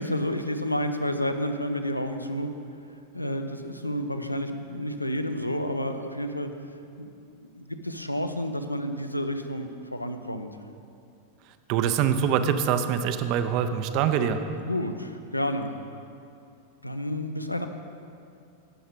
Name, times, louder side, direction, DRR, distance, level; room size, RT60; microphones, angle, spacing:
voice 1, 0.0-2.5 3.1-6.5 7.0-7.1 7.3-10.5 14.2-14.3 14.7-15.7 16.8-17.7, equal, 85° left, 7 dB, 0.4 m, -30 dB
voice 2, 11.7-14.4, right 8 dB, 40° right, 9 dB, 0.4 m, -24 dB
7.8 x 6.4 x 4.9 m, 2.5 s
figure-of-eight pair, 90°, 0 cm